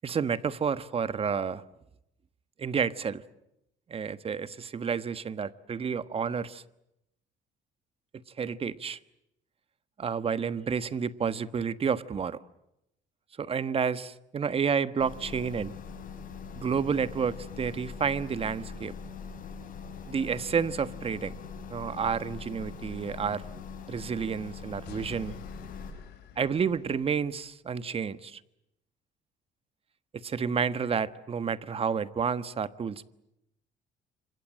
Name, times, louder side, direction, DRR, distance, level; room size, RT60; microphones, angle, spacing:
voice 1, 0.0-1.6 2.6-3.2 3.9-6.6 8.4-9.0 10.0-12.4 13.4-15.7 16.5-18.9 20.1-21.4 21.7-23.4 23.9-25.4 26.4-28.4 30.2-33.1, right 6 dB, 35° right, 14 dB, 1.4 m, -30 dB
sound 1, 15.0-25.9, left 6 dB, 55° left, 7.7 m, -42 dB
sound 2, 24.8-27.4, left 8 dB, 80° left, 5.4 m, -50 dB
28.5 x 26.5 x 7.5 m, 0.84 s
cardioid pair, 110°, 17 cm